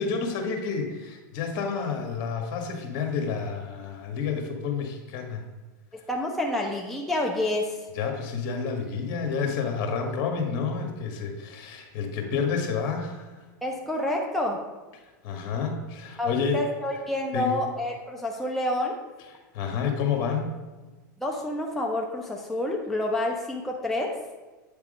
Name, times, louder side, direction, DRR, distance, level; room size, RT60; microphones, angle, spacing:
voice 1, 0.0-5.4 7.9-13.3 15.2-16.6 17.3-17.5 19.5-20.5, left 5 dB, 50° left, 3 dB, 1.5 m, -29 dB
voice 2, 6.1-7.9 13.6-14.6 16.2-19.0 21.2-24.1, left 1 dB, ahead, -1 dB, 0.8 m, -28 dB
8.6 x 3.5 x 5.1 m, 1.2 s
hypercardioid pair, 120°, 10 cm